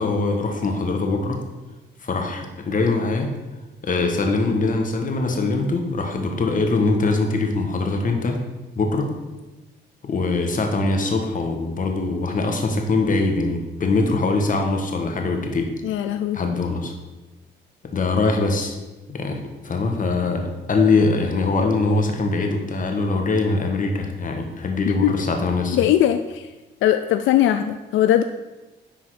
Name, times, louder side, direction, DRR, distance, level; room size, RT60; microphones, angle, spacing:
voice 1, 0.0-1.4 2.0-3.3 3.8-8.4 8.8-9.1 10.0-15.7 16.3-16.9 17.9-18.7 19.1-19.4 19.6-25.8, left 3 dB, 40° left, 3 dB, 1.5 m, -22 dB
voice 2, 15.8-16.4 24.9-25.1 25.7-26.5 26.8-28.2, left 12 dB, 80° left, 9 dB, 0.4 m, -20 dB
10.0 x 3.9 x 4.9 m, 1.1 s
cardioid pair, 90°, 20 cm